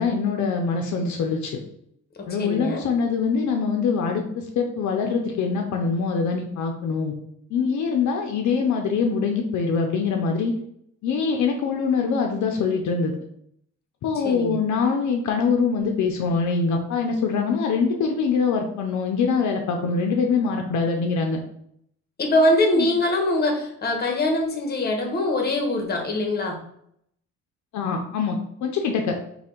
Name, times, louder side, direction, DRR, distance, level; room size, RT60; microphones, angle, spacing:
voice 1, 0.0-1.5 2.3-7.1 7.5-10.5 11.0-13.1 14.0-21.4 22.8-22.9 27.7-29.2, left 5 dB, 70° left, 3 dB, 0.6 m, -24 dB
voice 2, 2.2-2.8 14.1-14.6 22.2-26.6, left 1 dB, 35° left, 2 dB, 1.0 m, -23 dB
3.3 x 2.3 x 4.3 m, 0.71 s
cardioid pair, 90°, 30 cm